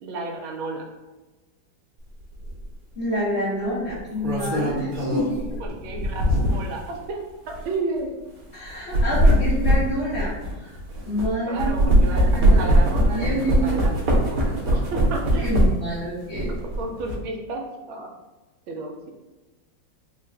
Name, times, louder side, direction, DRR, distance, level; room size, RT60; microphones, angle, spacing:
voice 1, 0.0-0.9 5.6-6.2 6.5-8.2 11.5-13.3 13.6-13.9 14.3-15.6 16.4-18.1 18.7-19.1, right 3 dB, 80° right, 1 dB, 1.3 m, -32 dB
sound 1, 2.4-2.6 3.9-6.8 7.4-7.6 8.7-11.3 11.6-15.9 16.3-17.1, equal, 55° right, 1.0 m, -21 dB
voice 2, 2.9-5.5 8.5-10.3 10.6-10.7 11.1-12.7 13.1-13.8 15.4-16.6, equal, 50° left, -7 dB, 0.8 m, -28 dB
4.0 x 2.3 x 3.3 m, 1.2 s
omnidirectional pair, 2.3 m